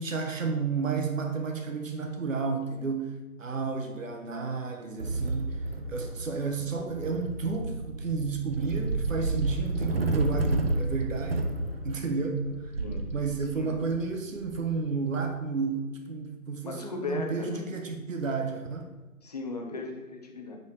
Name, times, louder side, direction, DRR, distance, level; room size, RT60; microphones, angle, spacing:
voice 1, 0.0-11.4 11.8-12.7 13.1-18.9, right 4 dB, 60° right, 4 dB, 1.2 m, -32 dB
sound 1, 5.0-15.2, right 2 dB, 40° right, 0.8 m, -31 dB
voice 2, 16.6-17.6 19.2-20.6, left 3 dB, 25° left, 2 dB, 1.0 m, -36 dB
9.3 x 4.8 x 4.8 m, 1.2 s
figure-of-eight pair, 150°, 44 cm